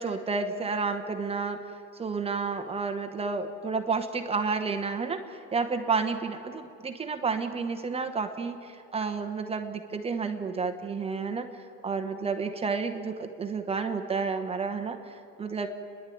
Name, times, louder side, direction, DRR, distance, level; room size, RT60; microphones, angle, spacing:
voice 1, 0.0-1.6 1.9-15.7, right 4 dB, 10° right, 6 dB, 0.9 m, -31 dB
30.0 x 11.0 x 9.2 m, 2.6 s
supercardioid pair, 150°, 50 cm